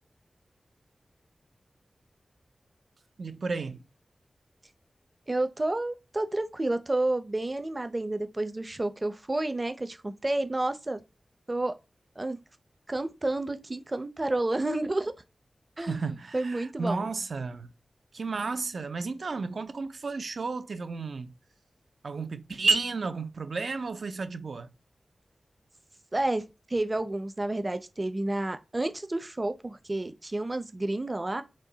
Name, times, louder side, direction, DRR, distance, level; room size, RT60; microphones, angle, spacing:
voice 1, 3.2-3.8 15.8-17.7 18.1-21.3 22.0-24.7, right 4 dB, 75° right, 0.5 m, -32 dB
voice 2, 5.3-11.0 11.5-11.8 12.2-12.4 12.9-15.1 15.8-16.0 16.3-17.0 26.1-31.4, right 2 dB, 30° right, 0.7 m, -30 dB
5.2 x 2.2 x 3.9 m
cardioid pair, 55°, 0 cm